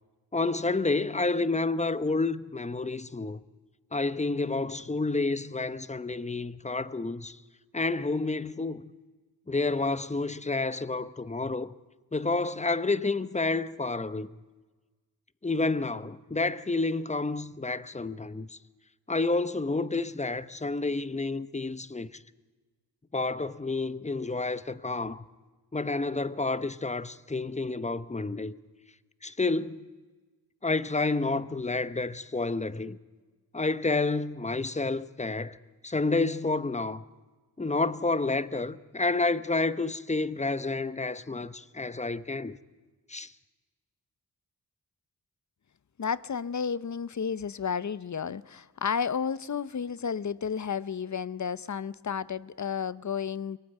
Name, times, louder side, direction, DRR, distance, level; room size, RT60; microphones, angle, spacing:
voice 1, 0.3-3.4 3.9-7.4 7.7-8.9 9.5-11.7 12.1-14.3 15.4-18.6 19.1-22.2 23.1-25.2 25.7-28.6 29.2-29.9 30.6-33.0 33.5-35.6 35.8-37.0 37.6-42.6 43.1-43.3, left 3 dB, 15° left, 0.9 m, -29 dB
voice 2, 46.0-53.6, left 6 dB, 45° left, 0.8 m, -32 dB
22.5 x 18.5 x 9.1 m
cardioid pair, 55°, 41 cm